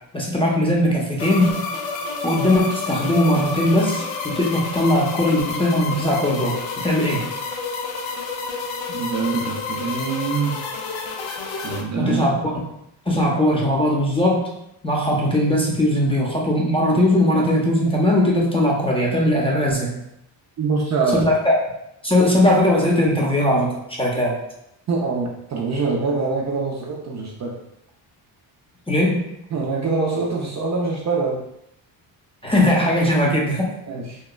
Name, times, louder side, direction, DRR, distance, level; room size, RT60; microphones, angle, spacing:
voice 1, 0.1-1.6 2.2-7.3 12.0-12.6 13.1-14.4 14.8-20.0 21.1-21.5 22.0-23.7 24.0-24.4 28.9-29.2 32.4-33.7, left 1 dB, 10° left, -3 dB, 0.5 m, -19 dB
sound 1, 1.2-11.8, left 4 dB, 80° left, 0.5 m, -29 dB
voice 2, 8.9-10.7 11.6-12.3 20.6-21.3 24.9-27.6 29.5-31.5 33.9-34.2, right 4 dB, 40° right, -2 dB, 0.4 m, -24 dB
2.9 x 2.2 x 2.2 m, 0.80 s
cardioid pair, 90°, 45 cm